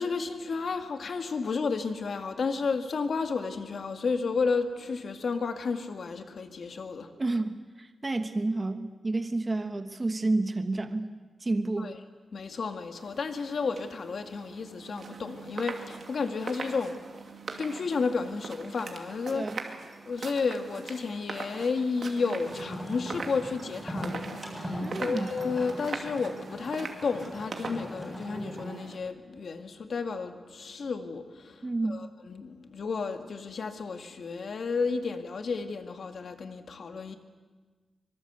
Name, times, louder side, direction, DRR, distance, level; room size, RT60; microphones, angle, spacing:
voice 1, 0.0-7.1 11.8-11.9 12.3-19.5 20.1-37.2, left 4 dB, 55° left, 7 dB, 2.1 m, -32 dB
voice 2, 7.2-11.1 11.4-11.9 19.3-19.6 24.8-25.3 31.6-32.0, right 2 dB, 25° right, 8 dB, 1.2 m, -30 dB
sound 1, 12.9-29.0, right 4 dB, 50° right, 2.5 m, -42 dB
sound 2, 22.4-28.9, equal, ahead, 7.4 m, -40 dB
24.5 x 23.0 x 8.2 m, 1.4 s
wide cardioid pair, 160°, 0 cm